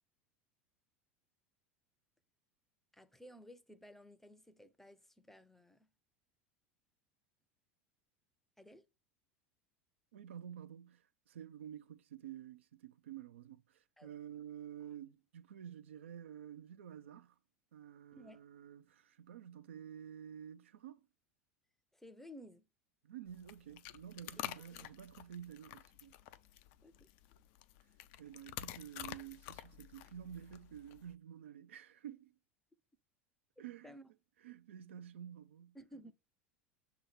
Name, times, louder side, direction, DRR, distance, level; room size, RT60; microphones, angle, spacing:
voice 1, 2.9-5.9 8.6-8.9 14.0-14.1 18.1-18.4 21.9-22.7 24.7-24.9 26.8-27.1 33.8-34.1 35.7-36.1, equal, 5° left, 0.6 m, -56 dB
voice 2, 10.1-17.4 17.7-21.0 23.0-26.2 28.2-32.4 33.6-34.0 34.4-35.8, right 9 dB, 70° right, 0.5 m, -50 dB
sound 1, 23.3-31.1, left 13 dB, 50° left, 0.5 m, -50 dB
6.9 x 2.9 x 5.6 m
figure-of-eight pair, 80°, 7 cm